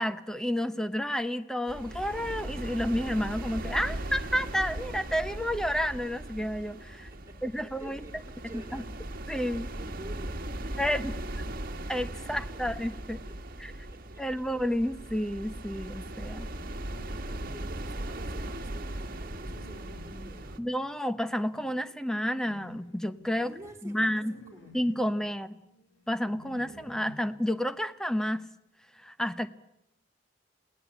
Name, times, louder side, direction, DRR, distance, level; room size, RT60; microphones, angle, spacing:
voice 1, 0.0-7.1 7.4-8.0 8.7-8.8 9.3-9.7 10.8-11.2 11.9-13.2 13.6-13.7 14.2-16.5 20.6-23.5 23.8-24.4 24.7-25.6 26.1-28.4 29.0-29.5, equal, 5° left, 11 dB, 1.1 m, -30 dB
sound 1, 1.7-20.6, right 1 dB, 50° right, 1.7 m, -38 dB
voice 2, 6.9-9.1 9.5-11.0 12.5-12.6 13.0-13.4 13.7-14.0 17.2-20.7 23.4-24.7, right 2 dB, 15° right, 1 dB, 4.3 m, -50 dB
sound 2, 16.8-17.7 18.5-27.6, equal, 85° left, 2.7 m, -54 dB
28.5 x 19.0 x 8.3 m, 0.85 s
head